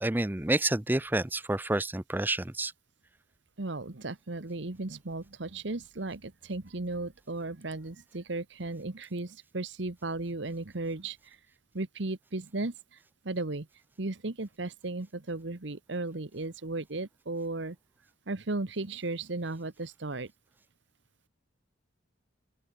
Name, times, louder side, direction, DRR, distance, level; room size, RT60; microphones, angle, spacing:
voice 1, 0.0-2.7, right 2 dB, 10° right, 0.5 m, -29 dB
voice 2, 3.6-11.4 11.7-13.0 13.2-13.7 14.0-17.8 18.3-20.3, right 2 dB, 70° right, 1.3 m, -35 dB
open air
head